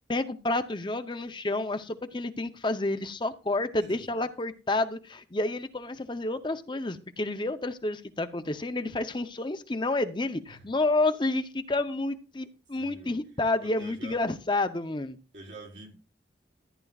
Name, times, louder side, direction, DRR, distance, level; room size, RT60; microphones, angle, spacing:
voice 1, 0.1-15.2, left 2 dB, 25° left, 9 dB, 0.6 m, -30 dB
voice 2, 3.9-4.2 10.5-10.7 12.7-13.2 13.6-14.2 15.3-16.0, right 1 dB, 75° right, -2 dB, 4.0 m, -46 dB
14.5 x 10.5 x 2.4 m, 0.33 s
head